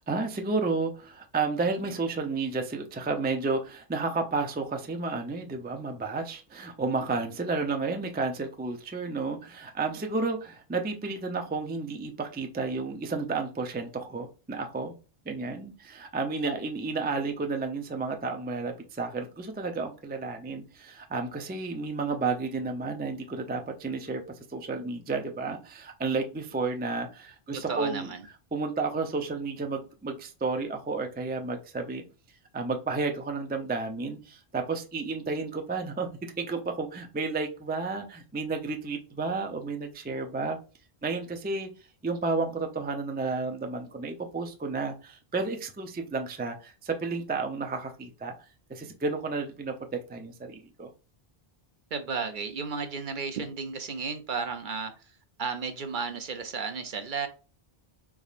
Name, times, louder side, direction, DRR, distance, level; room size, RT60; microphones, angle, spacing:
voice 1, 0.1-14.9 15.3-24.2 24.5-28.1 28.5-32.0 32.5-36.1 36.4-40.6 41.0-41.7 42.0-48.3 48.7-50.9, right 3 dB, 15° right, 0.4 m, -31 dB
voice 2, 27.5-28.2 51.9-54.9 55.4-57.3, right 5 dB, 55° right, 0.7 m, -33 dB
4.0 x 3.5 x 2.4 m
omnidirectional pair, 1.0 m